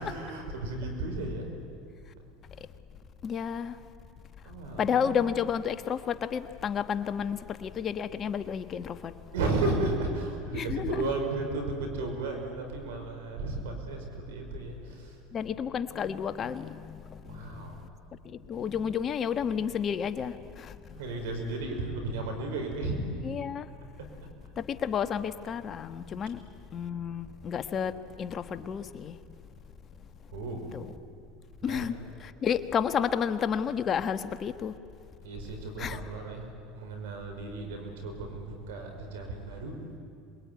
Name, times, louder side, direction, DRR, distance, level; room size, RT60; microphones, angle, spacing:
voice 1, 0.0-1.4 4.5-5.2 9.3-15.2 17.3-17.8 21.0-23.0 30.3-30.7 31.6-32.1 35.2-40.0, right 2 dB, 85° right, 4 dB, 5.5 m, -34 dB
voice 2, 3.2-3.8 4.8-9.1 10.5-11.0 15.3-17.9 18.2-21.0 23.2-23.7 24.6-26.4 26.7-27.9 28.2-29.1 30.7-30.9 31.6-34.8 35.8-36.0, left 7 dB, 40° left, 10 dB, 1.3 m, -31 dB
26.5 x 22.0 x 9.6 m, 2.3 s
hypercardioid pair, 95°, 0 cm